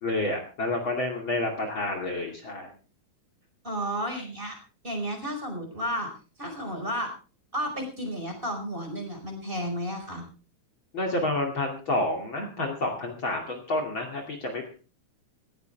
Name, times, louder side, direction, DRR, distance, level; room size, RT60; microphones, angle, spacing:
voice 1, 0.0-2.7 10.9-14.7, left 2 dB, 40° left, 1 dB, 3.1 m, -29 dB
voice 2, 3.6-4.6 4.8-6.1 6.4-7.1 7.5-10.3, equal, 15° right, 4 dB, 5.1 m, -32 dB
18.5 x 16.0 x 3.4 m, 0.35 s
omnidirectional pair, 3.4 m